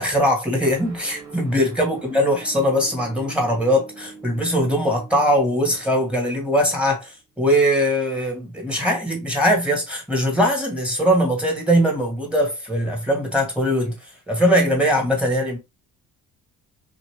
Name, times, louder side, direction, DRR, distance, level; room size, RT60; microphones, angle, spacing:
voice 1, 0.0-13.9 14.3-15.6, equal, 5° right, 1.6 m, -21 dB
sound 1, 0.6-7.0, right 4 dB, 45° right, 1.8 m, -44 dB
2.8 x 2.5 x 3.2 m
supercardioid pair, 70°, 37 cm